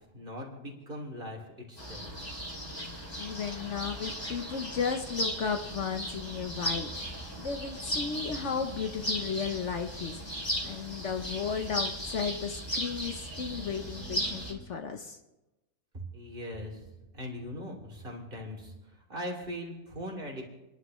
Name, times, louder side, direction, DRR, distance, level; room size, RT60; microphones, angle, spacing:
voice 1, 0.1-2.1 16.1-16.9 17.1-18.7 19.1-20.4, equal, 35° right, 0 dB, 3.0 m, -40 dB
sound 1, 1.8-14.5, equal, 15° left, 2.8 m, -36 dB
voice 2, 3.2-6.9 7.4-10.2 10.6-15.2, left 6 dB, 55° left, 6 dB, 1.1 m, -34 dB
29.5 x 11.5 x 3.1 m, 1.0 s
omnidirectional pair, 1.6 m